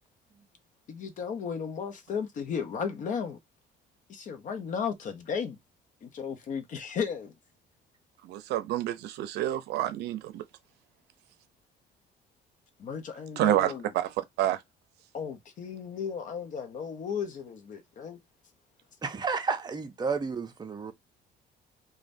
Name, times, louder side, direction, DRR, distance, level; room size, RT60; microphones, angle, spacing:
voice 1, 0.9-3.4 4.1-5.6 6.0-7.3 12.8-13.8 15.1-18.2, left 6 dB, 50° left, 0.7 m, -34 dB
voice 2, 8.2-10.4 13.4-14.1 14.4-14.6, right 13 dB, 85° right, 0.5 m, -28 dB
voice 3, 19.0-20.9, right 5 dB, 25° right, 0.6 m, -31 dB
3.3 x 2.2 x 2.6 m
cardioid pair, 110°, 17 cm